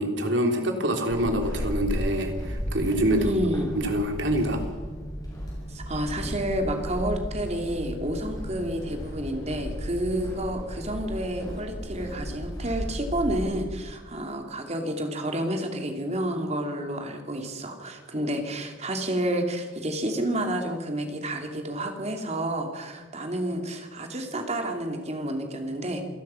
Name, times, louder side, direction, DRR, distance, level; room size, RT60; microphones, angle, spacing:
voice 1, 0.0-3.4 3.8-4.6, right 1 dB, 65° right, 4 dB, 3.3 m, -25 dB
Walk footsteps / Squeak, 1.1-13.8, equal, 20° left, 7.4 m, -34 dB
voice 2, 3.2-3.8 5.7-26.0, right 1 dB, 35° right, 4 dB, 2.9 m, -30 dB
27.5 x 18.5 x 5.8 m, 1.4 s
head